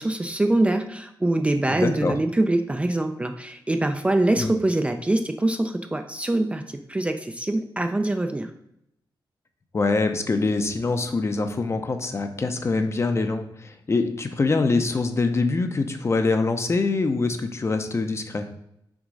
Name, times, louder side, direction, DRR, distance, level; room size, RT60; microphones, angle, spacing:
voice 1, 0.0-8.5, right 1 dB, 15° right, 6 dB, 0.4 m, -24 dB
voice 2, 1.7-2.1 4.4-4.5 9.7-18.5, left 3 dB, 30° left, 7 dB, 0.7 m, -24 dB
6.2 x 3.7 x 5.3 m, 0.78 s
wide cardioid pair, 135°, 9 cm